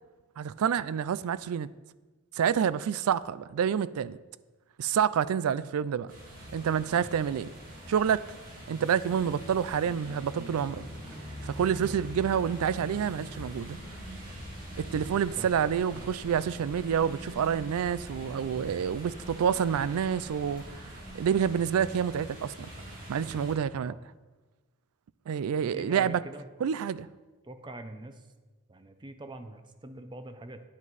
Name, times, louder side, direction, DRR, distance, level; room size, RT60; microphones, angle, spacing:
voice 1, 0.4-1.7 2.4-4.2 4.8-6.1 6.5-7.5 7.9-8.3 8.7-10.8 11.4-13.8 14.8-20.6 21.1-22.7 23.1-23.9 25.3-26.2 26.6-27.1, right 8 dB, 80° right, 0.3 m, -28 dB
sound 1, 6.1-23.5, equal, 40° right, 2.1 m, -43 dB
sound 2, 13.5-21.5, equal, 55° right, 3.2 m, -52 dB
voice 2, 25.7-26.5 27.4-28.3 28.7-30.6, right 1 dB, 20° right, 0.5 m, -43 dB
9.5 x 7.4 x 4.0 m
head